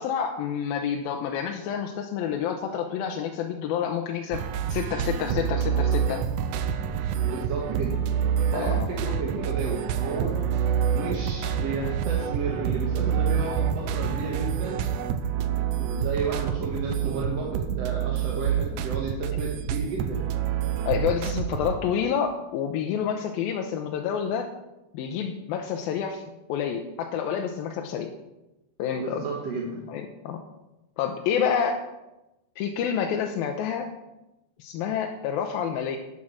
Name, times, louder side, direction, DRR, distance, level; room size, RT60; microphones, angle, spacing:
voice 1, 0.0-4.4 4.7-6.2 8.5-9.1 20.9-24.5 24.9-26.2 26.5-28.1 28.8-29.2 29.9-30.4 31.0-31.8 32.6-33.9 34.6-36.0, left 8 dB, 80° left, 3 dB, 2.5 m, -28 dB
sound 1, 4.3-21.8, right 8 dB, 80° right, 1.8 m, -27 dB
voice 2, 7.2-7.9 8.5-10.4 10.9-14.8 15.8-20.2 29.0-29.8, right 4 dB, 55° right, -2 dB, 2.1 m, -32 dB
11.5 x 8.6 x 6.3 m, 0.98 s
omnidirectional pair, 4.4 m